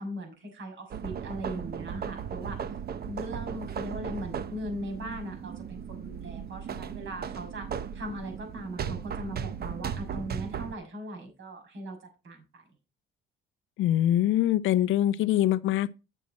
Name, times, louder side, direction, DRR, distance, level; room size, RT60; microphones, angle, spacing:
voice 1, 0.0-2.6 3.0-12.0 12.2-12.6, equal, 65° right, 6.6 m, -39 dB
sound 1, 0.9-10.7, right 7 dB, 50° right, 1.0 m, -36 dB
voice 2, 13.8-15.9, left 12 dB, 70° left, 0.6 m, -24 dB
10.0 x 7.4 x 4.2 m
cardioid pair, 90°, 21 cm